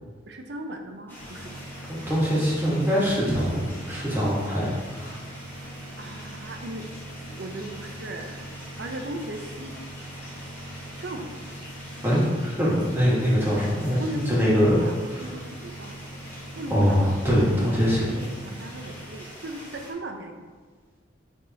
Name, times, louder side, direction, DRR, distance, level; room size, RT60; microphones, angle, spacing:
voice 1, 0.3-1.7 6.0-6.9 7.2-8.5 8.8-9.8 11.0-11.3 14.0-14.4 14.8-16.0 16.5-16.8 17.3-20.4, right 1 dB, 65° right, 4 dB, 0.7 m, -38 dB
sound 1, 1.1-19.9, equal, 10° left, 1.4 m, -44 dB
sound 2, 1.2-19.1, right 1 dB, 65° left, 1.3 m, -42 dB
voice 2, 2.0-5.2 12.0-15.3 16.7-18.0, equal, 10° right, -7 dB, 1.6 m, -23 dB
9.9 x 3.5 x 2.9 m, 1.4 s
head